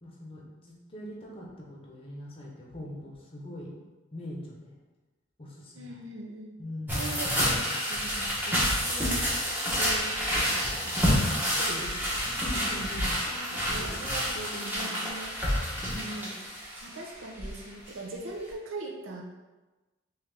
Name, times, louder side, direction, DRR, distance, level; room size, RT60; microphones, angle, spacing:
voice 1, 0.0-3.8 4.1-4.7 5.4-6.0 6.6-7.2 12.4-13.1 13.5-14.0 14.3-15.0, equal, 30° left, -3 dB, 0.7 m, -42 dB
voice 2, 5.7-6.6 6.9-8.6 8.9-9.2 9.7-12.6 13.3-15.4 15.8-16.3 16.8-19.2, right 2 dB, 80° right, 0 dB, 0.6 m, -41 dB
sound 1, 6.9-17.1 17.4-17.6 17.9-18.0, equal, 10° right, 0.8 m, -29 dB
3.6 x 3.1 x 3.3 m, 1.2 s
head